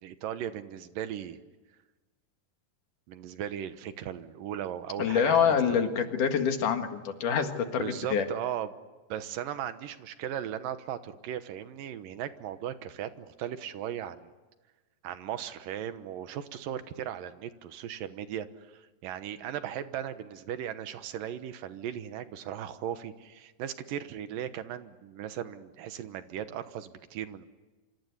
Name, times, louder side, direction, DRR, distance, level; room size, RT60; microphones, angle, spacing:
voice 1, 0.0-1.4 3.1-5.8 7.8-8.7 9.1-14.3 15.0-18.5 18.7-27.5, right 10 dB, 80° right, 11 dB, 2.8 m, -37 dB
voice 2, 5.0-8.2, left 7 dB, 70° left, 6 dB, 3.3 m, -26 dB
26.5 x 25.5 x 8.3 m, 1.2 s
omnidirectional pair, 3.9 m